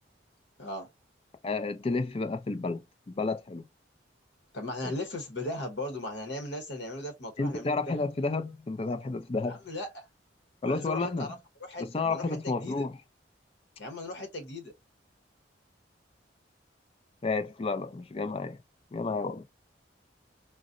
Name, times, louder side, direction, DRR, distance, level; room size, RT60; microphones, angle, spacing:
voice 1, 1.4-3.7 4.8-4.9 7.4-9.6 10.6-11.3 11.8-13.0 17.2-18.6 18.9-19.4, left 3 dB, 30° left, 0.4 m, -31 dB
voice 2, 4.5-8.0 9.5-10.1 10.6-12.9 13.8-14.7, left 1 dB, 65° left, 0.9 m, -38 dB
3.9 x 2.0 x 2.5 m
head